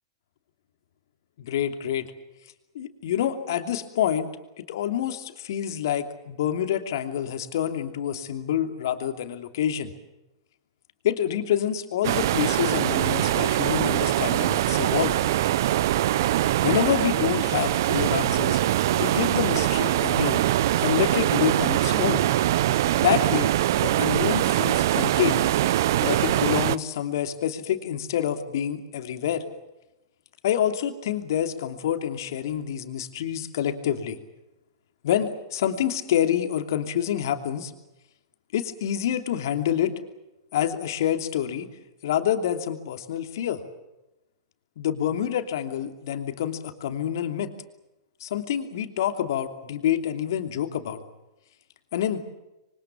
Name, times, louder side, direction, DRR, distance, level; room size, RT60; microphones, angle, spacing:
voice 1, 1.4-2.1 2.7-4.3 4.6-9.9 11.0-15.2 16.6-18.6 19.0-20.5 20.8-22.2 23.0-23.5 23.8-25.5 26.0-29.4 30.4-34.2 35.0-37.7 38.5-39.9 40.5-41.7 42.0-43.6 44.8-47.5 48.2-51.0 51.9-52.2, left 10 dB, 60° left, 7 dB, 2.9 m, -27 dB
sound 1, 12.0-26.8, right 14 dB, 60° right, 0.8 m, -23 dB
26.0 x 24.5 x 7.4 m, 0.97 s
hypercardioid pair, 105°, 2 cm